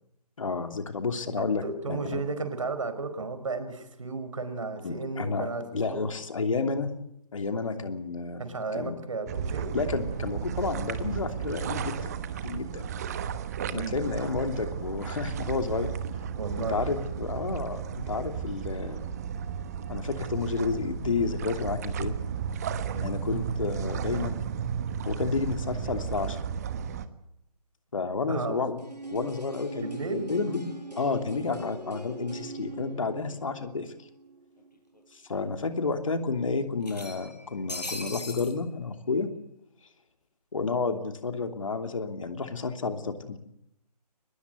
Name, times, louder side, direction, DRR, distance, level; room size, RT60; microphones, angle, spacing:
voice 1, 0.4-2.2 4.8-6.9 7.3-8.4 8.7-9.0 9.7-12.1 12.4-12.9 13.7-15.9 16.6-19.0 19.9-22.1 23.0-24.4 25.0-26.4 27.9-28.8 29.1-33.9 35.3-39.3 40.5-43.4, left 4 dB, 50° left, 7 dB, 3.0 m, -31 dB
voice 2, 1.4-6.1 8.4-9.7 13.7-14.1 16.4-16.8 22.8-23.1 28.3-28.6 29.8-30.3, right 3 dB, 50° right, 10 dB, 4.9 m, -34 dB
sound 1, 9.3-27.1, right 7 dB, 25° right, 1.3 m, -34 dB
sound 2, 28.8-34.7 35.0-35.1, right 3 dB, 90° right, 7.7 m, -41 dB
sound 3, 33.4-33.5 33.8-33.9 35.0-35.1 35.4-35.5 36.8-38.5, left 2 dB, 80° left, 5.8 m, -38 dB
23.5 x 20.5 x 7.9 m, 0.77 s
figure-of-eight pair, 145°, 21 cm